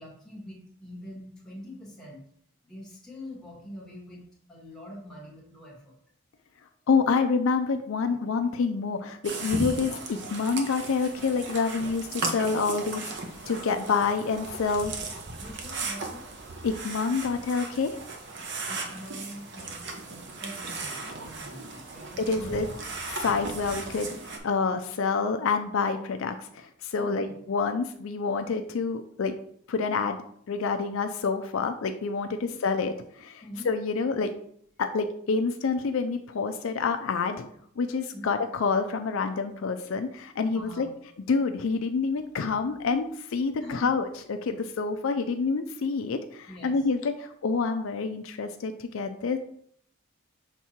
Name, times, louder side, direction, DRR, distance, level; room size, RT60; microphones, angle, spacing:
voice 1, 0.0-2.2 2.6-4.2 4.5-6.0 15.4-16.3 18.7-22.6 27.0-27.3 32.4-32.5 33.4-33.7 38.1-38.2 40.5-40.9 43.6-43.9 46.5-46.9, left 1 dB, ahead, -4 dB, 1.6 m, -44 dB
voice 2, 6.9-13.1 13.5-14.9 16.6-17.9 22.3-22.7 23.1-24.1 24.4-29.3 29.7-30.2 30.5-32.4 32.6-34.3 34.8-37.5 37.8-40.9 41.3-49.4, left 4 dB, 65° left, 7 dB, 0.4 m, -27 dB
sound 1, 9.2-24.4, right 3 dB, 50° right, 0.8 m, -37 dB
6.0 x 3.6 x 4.3 m, 0.67 s
head